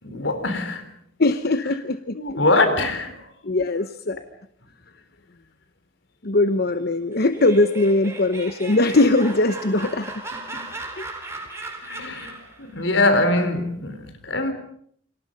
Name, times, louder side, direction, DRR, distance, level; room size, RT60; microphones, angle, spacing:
voice 1, 0.0-0.9 1.6-1.7 2.1-3.3 4.2-4.3 10.5-10.7 11.8-14.5, left 2 dB, 80° left, 4.1 m, -23 dB
voice 2, 1.2-2.2 3.4-4.2 6.2-10.1, left 2 dB, 55° left, 1.0 m, -20 dB
Laughter, 7.1-12.6, right 2 dB, 15° right, 4.8 m, -36 dB
29.0 x 26.0 x 5.4 m
head